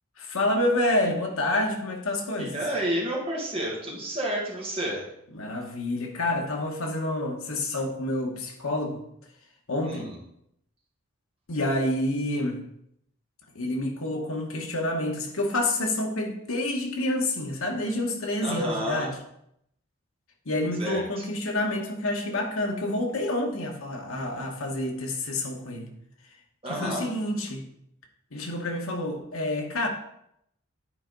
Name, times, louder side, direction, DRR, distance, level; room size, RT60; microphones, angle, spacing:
voice 1, 0.2-2.6 5.3-9.0 9.7-10.1 11.5-12.6 13.5-19.2 20.4-25.9 26.7-27.6 28.3-29.9, left 1 dB, 75° left, 2 dB, 1.2 m, -28 dB
voice 2, 2.4-5.1 9.8-10.2 18.4-19.1 20.8-21.2 26.6-27.1, right 1 dB, 25° right, -3 dB, 1.7 m, -30 dB
9.8 x 4.6 x 3.9 m, 0.74 s
head